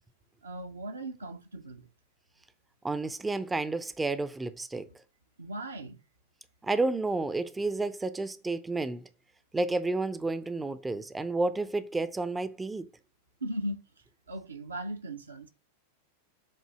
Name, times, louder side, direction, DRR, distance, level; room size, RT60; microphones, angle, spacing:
voice 1, 0.4-1.9 4.9-5.0 5.4-6.0 13.4-13.8 14.3-15.5, right 1 dB, 75° right, 0.8 m, -38 dB
voice 2, 2.8-4.9 6.6-9.0 9.5-12.9, right 3 dB, 10° right, 0.5 m, -31 dB
7.5 x 2.7 x 5.9 m
figure-of-eight pair, 90°, 0 cm